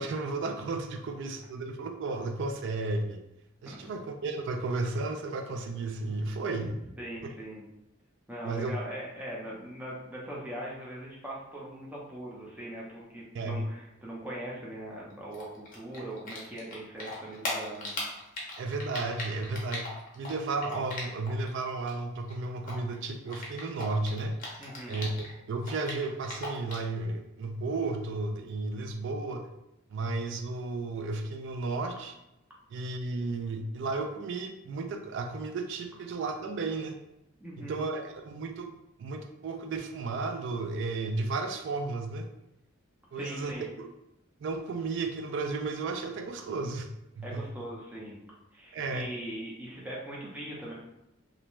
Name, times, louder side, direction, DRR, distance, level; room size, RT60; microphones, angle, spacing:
voice 1, 0.0-3.2 3.6-6.7 8.4-8.8 13.3-13.6 18.6-19.9 20.2-24.3 24.9-29.5 29.9-32.1 32.7-37.0 37.6-38.7 39.0-42.3 43.1-43.9 44.4-46.9 47.2-47.5 48.7-49.1, right 3 dB, 60° right, 5 dB, 0.3 m, -33 dB
voice 2, 7.0-7.6 8.3-17.9 24.6-25.0 37.4-37.8 43.1-43.7 47.2-48.2 48.5-50.7, right 1 dB, 5° right, -5 dB, 0.6 m, -40 dB
Typing, 15.3-16.7 17.0-21.5 21.7-25.3 25.6-26.9, left 2 dB, 40° left, 0.7 m, -38 dB
2.5 x 2.1 x 3.0 m, 0.88 s
head